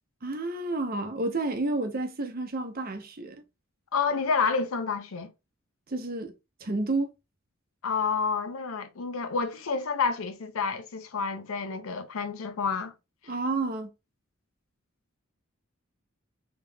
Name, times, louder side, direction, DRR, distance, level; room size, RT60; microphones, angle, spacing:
voice 1, 0.2-3.4 5.9-6.3 6.6-7.1 13.3-13.9, right 2 dB, 45° right, 0.7 m, -30 dB
voice 2, 3.9-5.3 7.8-12.9, left 5 dB, 80° left, 0.6 m, -29 dB
3.4 x 2.9 x 2.2 m
head